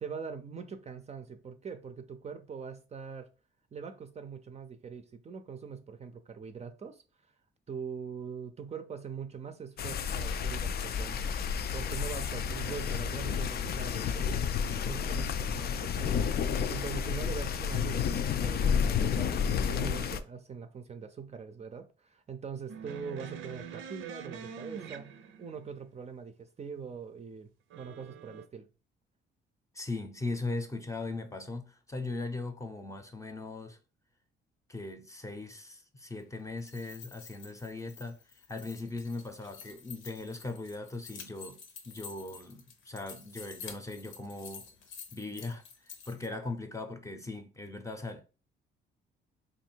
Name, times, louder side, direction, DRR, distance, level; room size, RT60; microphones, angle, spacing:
voice 1, 0.0-3.3 3.7-7.0 7.7-11.3 11.7-14.4 14.7-27.5 27.8-28.7, right 6 dB, 35° right, 0.5 m, -42 dB
sound 1, 9.8-20.2, left 7 dB, 55° left, 0.4 m, -31 dB
sound 2, 22.7-25.7 27.7-28.4, right 7 dB, 85° right, 0.6 m, -44 dB
voice 2, 29.7-33.8 34.7-44.7 45.1-45.6 46.1-48.2, left 3 dB, 15° left, 0.7 m, -39 dB
sound 3, 36.5-46.3, left 6 dB, 80° left, 0.9 m, -49 dB
3.3 x 2.6 x 4.4 m
cardioid pair, 90°, 20 cm